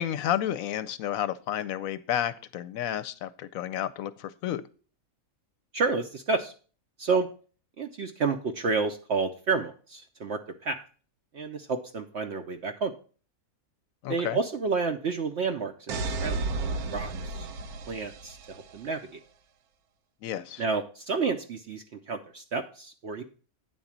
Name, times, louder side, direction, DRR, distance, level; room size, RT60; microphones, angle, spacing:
voice 1, 0.0-4.6 14.0-14.4 20.2-20.6, left 11 dB, 75° left, 14 dB, 1.0 m, -31 dB
voice 2, 5.7-6.5 7.0-7.3 7.8-10.8 11.3-12.9 14.1-16.6 16.9-17.5 17.9-19.2 20.6-23.2, right 4 dB, 60° right, 5 dB, 0.8 m, -30 dB
sound 1, 15.9-18.8, right 3 dB, 90° right, 1.3 m, -33 dB
9.4 x 3.9 x 7.2 m, 0.40 s
omnidirectional pair, 1.5 m